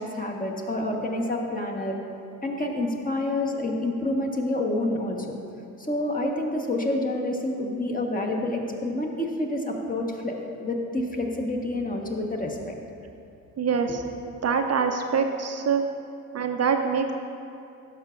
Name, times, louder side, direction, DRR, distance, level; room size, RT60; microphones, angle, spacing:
voice 1, 0.0-2.0 2.4-5.3 5.8-12.7, left 1 dB, 20° left, 0 dB, 1.3 m, -28 dB
voice 2, 13.6-14.0 14.4-15.8 16.3-17.1, right 6 dB, 40° right, 5 dB, 0.6 m, -24 dB
12.5 x 5.7 x 2.5 m, 2.6 s
hypercardioid pair, 50°, 41 cm